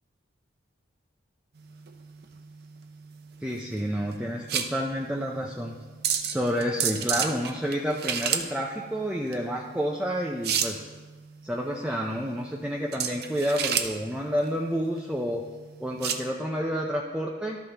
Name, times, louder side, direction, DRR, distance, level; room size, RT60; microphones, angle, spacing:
sound 1, 1.6-16.3, right 8 dB, 55° right, 0.6 m, -32 dB
voice 1, 3.4-5.7 6.3-10.9 11.4-15.4 15.8-17.6, equal, 5° right, -1 dB, 0.5 m, -29 dB
13.5 x 5.6 x 3.4 m, 1.3 s
head